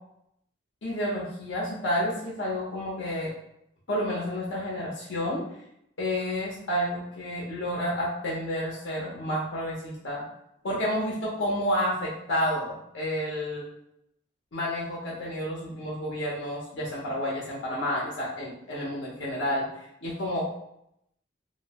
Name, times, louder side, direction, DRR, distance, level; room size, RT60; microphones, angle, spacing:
voice 1, 0.8-3.3 3.9-5.4 6.0-10.2 10.6-13.6 14.5-19.7 20.0-20.5, equal, 75° left, -5 dB, 0.7 m, -30 dB
2.6 x 2.0 x 2.8 m, 0.78 s
head